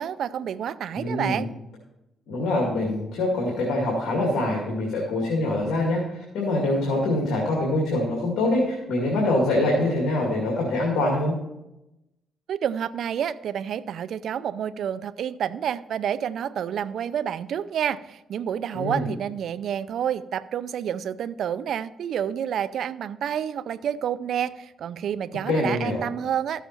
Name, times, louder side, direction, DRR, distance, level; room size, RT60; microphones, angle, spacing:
voice 1, 0.0-1.5 12.5-26.6, right 9 dB, 65° right, 16 dB, 0.4 m, -29 dB
voice 2, 0.9-1.5 2.3-11.3 18.7-19.1 25.5-26.0, left 1 dB, 80° left, -2 dB, 2.3 m, -24 dB
13.5 x 7.1 x 4.5 m, 0.94 s
cardioid pair, 90°, 0 cm